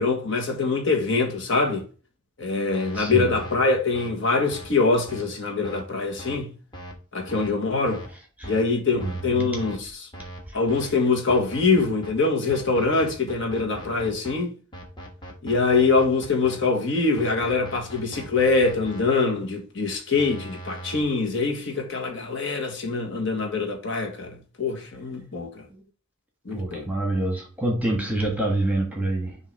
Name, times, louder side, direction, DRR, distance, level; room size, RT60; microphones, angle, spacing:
voice 1, 0.0-1.8 2.4-6.5 7.1-8.0 8.5-9.9 10.5-14.5 15.4-25.6 26.4-26.8, left 3 dB, 60° left, 1.5 m, -24 dB
sound 1, 2.7-3.0 3.3-3.6 3.9-4.1 4.5-4.7 5.1-5.2 5.6-5.8 6.2-6.4 6.7-6.9 7.3-7.5 7.9-8.1 8.4-8.6 9.0-9.2 9.6-9.8 10.1-10.4 10.7-10.9 11.3-12.1 12.5-14.3 14.7-16.6 17.2-19.0 20.2-21.0, right 1 dB, 20° left, 1.3 m, -40 dB
voice 2, 2.9-3.4 8.4-8.5 8.9-9.7 10.5-10.6 10.8-10.9 25.7-25.8 26.5-29.4, right 1 dB, 5° right, 1.3 m, -27 dB
6.5 x 2.8 x 5.3 m
head